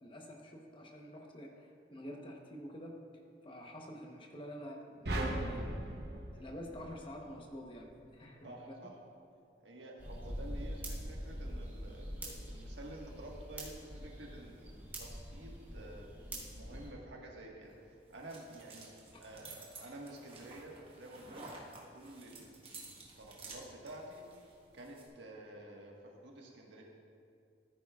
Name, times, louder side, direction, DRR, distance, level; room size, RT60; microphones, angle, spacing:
voice 1, 0.0-3.0 3.4-5.7 6.3-8.7, equal, 30° left, 1 dB, 1.0 m, -48 dB
sound 1, 5.1-7.5, right 1 dB, 60° right, 0.9 m, -38 dB
voice 2, 8.4-8.9 9.6-16.1 16.5-21.6 21.9-24.3 24.7-26.8, right 1 dB, 90° right, -1 dB, 1.5 m, -50 dB
sound 2, 10.0-16.9, equal, 10° right, 2.0 m, -44 dB
sound 3, 17.6-25.1, right 3 dB, 30° right, 1.3 m, -53 dB
14.5 x 9.0 x 2.4 m, 2.4 s
head